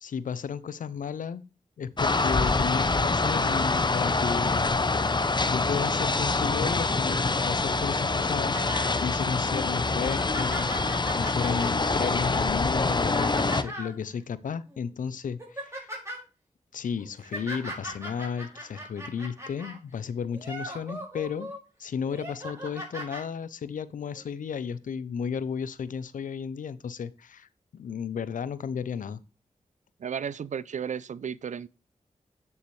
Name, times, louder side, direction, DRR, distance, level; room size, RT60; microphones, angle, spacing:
voice 1, 0.0-1.4 1.8-5.1 5.5-8.6 9.0-15.9 16.7-21.5 21.8-29.2, left 7 dB, 80° left, 0.6 m, -33 dB
sound 1, 2.0-13.6, left 3 dB, 35° left, 0.8 m, -25 dB
sound 2, 8.5-9.0 9.4-9.5 10.0-14.0 14.7-14.9 15.2-16.2 17.0-19.8 20.3-21.6 22.0-23.2 24.2-24.3, equal, 20° right, 5.0 m, -39 dB
voice 2, 30.0-31.7, right 7 dB, 65° right, 0.4 m, -33 dB
9.6 x 7.0 x 3.2 m
cardioid pair, 40°, 13 cm